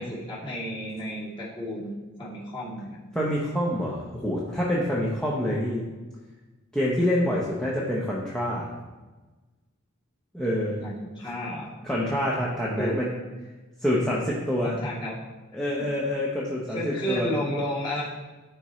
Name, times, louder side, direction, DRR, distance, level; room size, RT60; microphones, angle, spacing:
voice 1, 0.0-3.0 10.7-11.7 12.8-13.0 14.6-15.1 15.8-15.9 16.7-18.0, equal, 25° left, -8 dB, 2.3 m, -32 dB
voice 2, 3.1-5.8 6.7-8.7 10.3-10.8 11.8-13.1 13.8-14.8 15.5-17.3, equal, 5° left, -6 dB, 0.9 m, -26 dB
12.5 x 4.3 x 3.2 m, 1.2 s
head